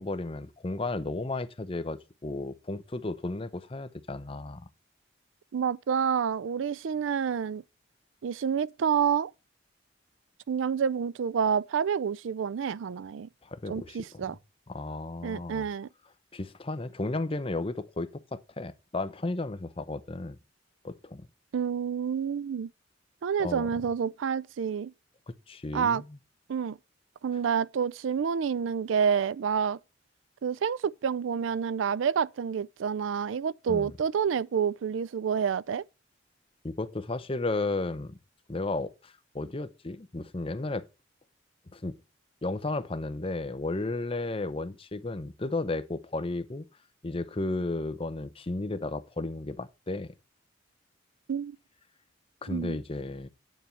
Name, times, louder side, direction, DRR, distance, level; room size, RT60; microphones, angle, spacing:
voice 1, 0.0-4.7 13.4-14.3 14.7-15.6 16.3-20.4 20.8-21.3 23.4-23.7 25.5-26.0 33.7-33.9 36.6-38.2 38.5-40.8 41.7-41.9 42.4-46.7 47.0-50.1 52.4-53.3, left 2 dB, 30° left, 0.7 m, -33 dB
voice 2, 5.5-7.6 8.2-9.3 10.5-13.3 13.7-14.4 15.2-15.9 21.5-22.7 23.2-24.9 25.7-26.0 26.5-26.8 27.2-29.8 30.4-35.8 51.3-51.6 52.5-52.8, right 7 dB, 85° right, 0.4 m, -28 dB
9.3 x 4.6 x 6.8 m
head